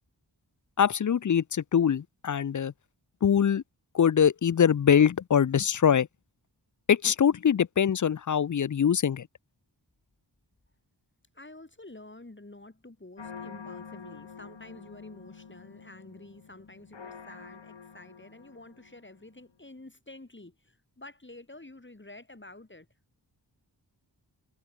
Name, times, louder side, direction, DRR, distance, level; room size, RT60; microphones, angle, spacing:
voice 1, 0.8-2.7 3.2-3.6 3.9-6.1 6.9-9.3, left 8 dB, 45° left, 0.5 m, -23 dB
voice 2, 11.3-22.9, left 2 dB, 25° left, 5.1 m, -49 dB
sound 1, 13.2-19.3, left 6 dB, 85° left, 3.1 m, -47 dB
wide cardioid pair, 75°, 43 cm